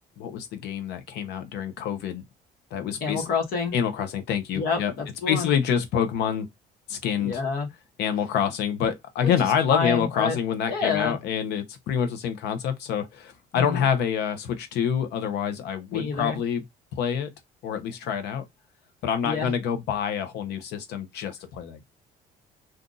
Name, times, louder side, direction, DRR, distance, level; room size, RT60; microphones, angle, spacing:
voice 1, 0.2-2.2 2.7-3.3 3.7-4.9 5.3-6.5 6.9-7.4 8.0-16.6 16.9-17.3 17.6-18.4 19.0-21.8, left 8 dB, 80° left, 0.8 m, -27 dB
voice 2, 3.0-3.7 4.5-5.5 7.2-7.7 9.2-9.3 9.7-10.4 10.7-11.2 13.5-13.9 15.9-16.4 19.2-19.5, left 5 dB, 65° left, 1.3 m, -28 dB
2.6 x 2.5 x 3.8 m
cardioid pair, 110°, 17 cm